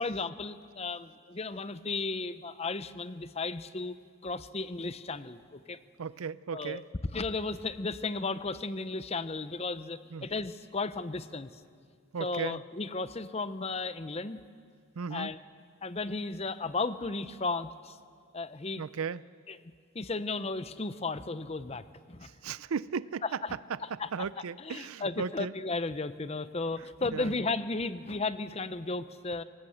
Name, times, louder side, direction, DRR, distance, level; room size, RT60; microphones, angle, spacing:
voice 1, 0.0-4.0 4.2-5.8 6.5-6.8 7.1-11.6 12.2-14.4 15.1-15.4 15.8-18.0 18.3-18.8 19.5-19.6 19.9-22.3 23.2-23.5 23.8-24.3 24.6-29.4, left 3 dB, 30° left, 13 dB, 0.7 m, -34 dB
voice 2, 6.0-6.8 10.1-10.3 12.1-12.6 15.0-15.3 18.8-19.2 22.2-23.2 23.7-25.5 27.1-27.3, right 6 dB, 85° right, 18 dB, 0.5 m, -36 dB
25.0 x 17.5 x 7.9 m, 2.1 s
head